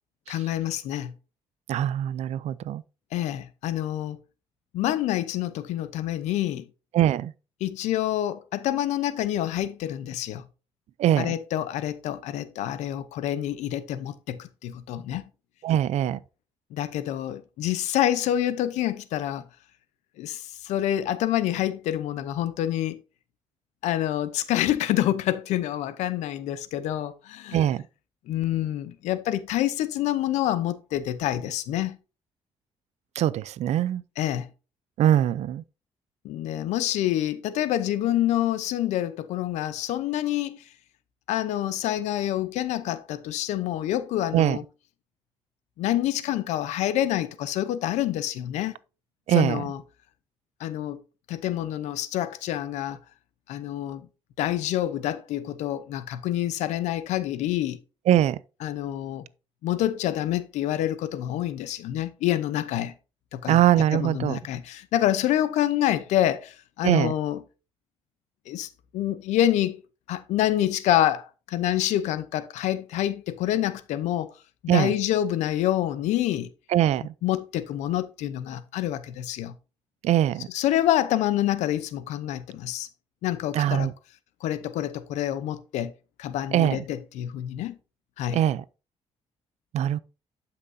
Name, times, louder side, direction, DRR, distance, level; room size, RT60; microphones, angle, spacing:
voice 1, 0.3-1.1 3.1-4.2 4.7-6.6 7.6-10.4 11.2-15.2 16.7-19.4 20.2-23.0 23.8-27.6 28.3-32.0 34.2-34.5 36.2-40.6 41.3-44.6 45.8-48.7 49.3-49.8 50.6-51.0 51.3-53.0 53.5-54.1 54.4-57.8 58.6-59.2 59.6-62.9 63.3-63.6 63.9-67.4 68.5-69.8 70.1-74.3 74.6-76.5 77.2-79.5 80.5-82.9 83.2-83.9 84.4-85.9 86.2-87.8 88.2-88.4, left 12 dB, 90° left, 0.7 m, -27 dB
voice 2, 1.7-2.8 6.9-7.3 11.0-11.3 15.6-16.2 27.5-27.8 33.2-34.0 35.0-35.6 44.3-44.6 49.3-49.6 58.1-58.4 63.5-64.4 66.8-67.1 74.7-74.9 76.7-77.1 80.0-80.5 83.5-83.9 86.5-86.8 88.3-88.6 89.7-90.0, right 12 dB, 75° right, 0.5 m, -22 dB
11.0 x 5.9 x 2.7 m
cardioid pair, 80°, 12 cm